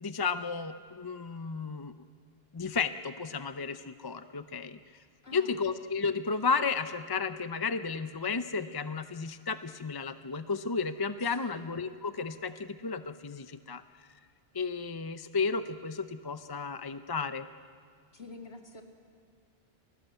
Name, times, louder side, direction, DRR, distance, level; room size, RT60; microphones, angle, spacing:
voice 1, 0.0-1.9 2.5-4.8 5.3-13.8 14.5-17.5, left 5 dB, 30° left, 10 dB, 0.5 m, -33 dB
voice 2, 5.2-5.7 11.2-11.7 18.1-18.8, left 3 dB, 65° left, 3 dB, 2.7 m, -48 dB
29.0 x 19.5 x 8.2 m, 2.1 s
omnidirectional pair, 1.1 m